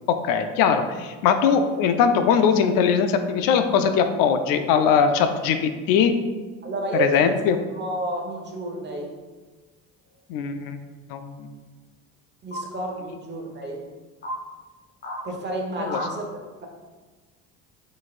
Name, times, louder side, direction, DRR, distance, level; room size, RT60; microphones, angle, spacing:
voice 1, 0.2-6.1 7.0-7.6 10.3-10.8 11.1-11.5 15.8-16.0, left 7 dB, 70° left, 8 dB, 0.5 m, -21 dB
voice 2, 6.6-7.3 7.7-9.1 12.4-13.9 15.2-16.3, right 2 dB, 30° right, 1 dB, 1.1 m, -30 dB
sound 1, 8.4-8.5 9.9-10.4 12.5-12.6 13.5-13.6 14.2-14.4 15.0-15.2 15.8-16.1, equal, 30° left, 1.2 m, -33 dB
4.7 x 4.1 x 2.4 m, 1.3 s
supercardioid pair, 85°, 37 cm